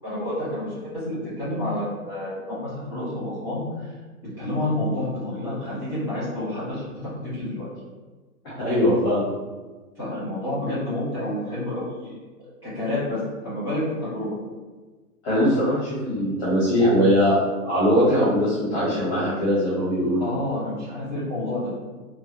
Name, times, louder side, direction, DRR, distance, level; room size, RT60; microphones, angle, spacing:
voice 1, 0.0-3.9 4.4-6.9 7.2-7.7 10.0-12.1 12.4-14.3 20.2-21.7, left 1 dB, 5° right, -13 dB, 1.4 m, -29 dB
voice 2, 8.6-9.3 15.2-17.4 17.6-20.2, equal, 15° left, -10 dB, 0.7 m, -21 dB
3.3 x 2.2 x 2.7 m, 1.3 s
hypercardioid pair, 165°, 44 cm